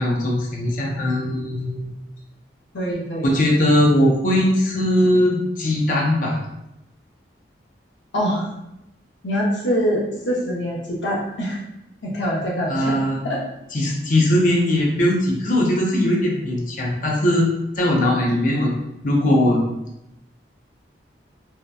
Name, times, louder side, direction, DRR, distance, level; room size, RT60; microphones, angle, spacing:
voice 1, 0.0-2.0 3.2-6.4 12.7-13.2 13.7-17.4 17.8-18.7 19.0-19.6, left 1 dB, 45° left, -1 dB, 0.5 m, -19 dB
voice 2, 2.7-3.3 8.1-8.5 9.2-11.6 12.0-12.9 13.2-13.4, equal, 85° left, -3 dB, 0.7 m, -24 dB
2.7 x 2.1 x 2.2 m, 0.85 s
head